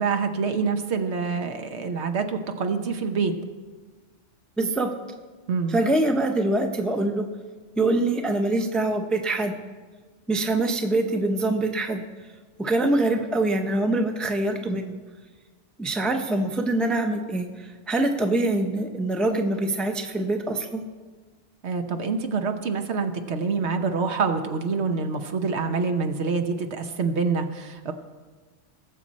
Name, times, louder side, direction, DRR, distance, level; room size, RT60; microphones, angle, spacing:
voice 1, 0.0-3.3 5.5-5.8 21.6-27.9, right 5 dB, 65° right, 6 dB, 1.1 m, -26 dB
voice 2, 4.6-4.9 5.7-7.3 7.8-9.5 10.3-12.0 12.6-14.9 15.8-20.8, right 2 dB, ahead, 4 dB, 0.7 m, -24 dB
19.5 x 7.4 x 4.2 m, 1.4 s
omnidirectional pair, 1.2 m